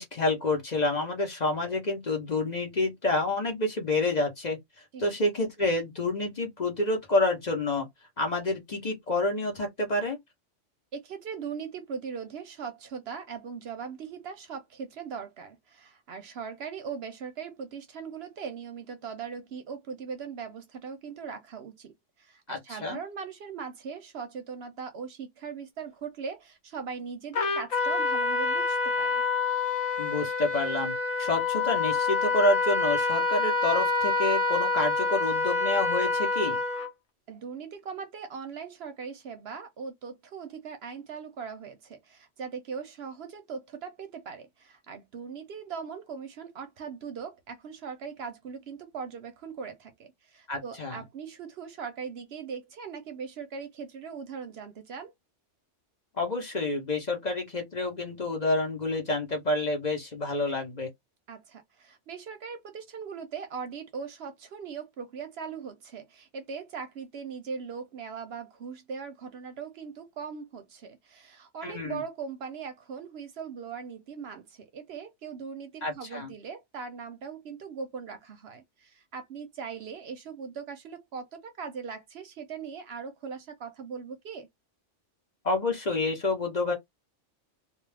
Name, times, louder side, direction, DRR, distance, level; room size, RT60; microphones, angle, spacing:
voice 1, 0.0-4.6 5.0-7.9 8.2-10.2 22.5-23.0 30.0-36.6 50.5-51.0 56.2-60.9 71.6-72.0 75.8-76.3 85.4-86.7, left 2 dB, 40° left, 0.8 m, -28 dB
voice 2, 10.9-29.2 37.3-55.1 61.3-84.5, right 6 dB, 65° right, 0.8 m, -40 dB
Trumpet, 27.3-36.9, left 4 dB, 75° left, 1.1 m, -27 dB
2.3 x 2.3 x 3.2 m
omnidirectional pair, 1.3 m